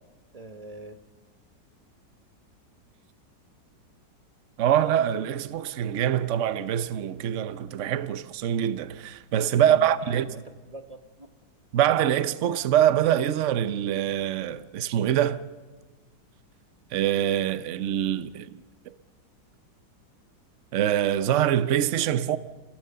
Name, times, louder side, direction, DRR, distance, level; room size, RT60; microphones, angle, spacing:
voice 1, 0.3-1.0 9.6-11.3, right 1 dB, 30° right, 0.8 m, -42 dB
voice 2, 4.6-10.3 11.7-15.4 16.9-18.5 18.9-19.0 20.7-22.4, right 10 dB, 55° right, 0.9 m, -24 dB
29.0 x 16.5 x 6.8 m
omnidirectional pair, 1.9 m